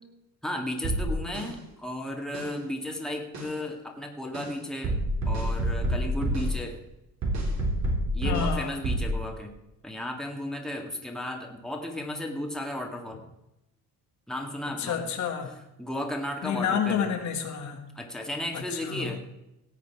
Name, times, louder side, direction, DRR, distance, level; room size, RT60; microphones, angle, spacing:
voice 1, 0.4-5.0 5.3-6.8 8.1-9.5 9.8-13.2 14.3-15.0 15.8-17.1 17.9-19.2, left 1 dB, ahead, 1 dB, 2.0 m, -34 dB
Spacious drum pattern, 0.8-1.5 2.3-2.5 3.3-3.5 4.3-4.5 4.8-6.5 7.2-8.5 8.8-9.1, right 1 dB, 55° right, 4.0 m, -27 dB
voice 2, 8.2-8.8 14.8-15.5 16.4-17.8 18.5-19.2, left 7 dB, 60° left, 4 dB, 1.9 m, -29 dB
17.5 x 8.2 x 4.7 m, 0.89 s
cardioid pair, 125°, 32 cm